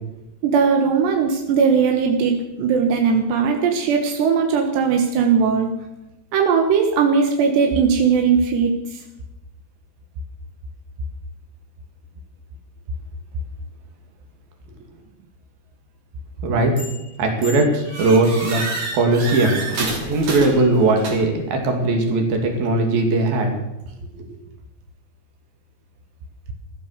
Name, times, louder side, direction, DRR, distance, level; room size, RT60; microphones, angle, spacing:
voice 1, 0.4-5.7 6.3-8.8, right 6 dB, 85° right, 3 dB, 3.6 m, -18 dB
voice 2, 16.4-16.7 17.2-18.6 18.9-19.6 19.9-23.5, right 2 dB, 60° right, 3 dB, 4.3 m, -19 dB
sound 1, 16.8-17.1 17.4-21.5, right 2 dB, 45° right, 4.3 m, -30 dB
16.0 x 12.5 x 6.6 m, 0.93 s
omnidirectional pair, 4.8 m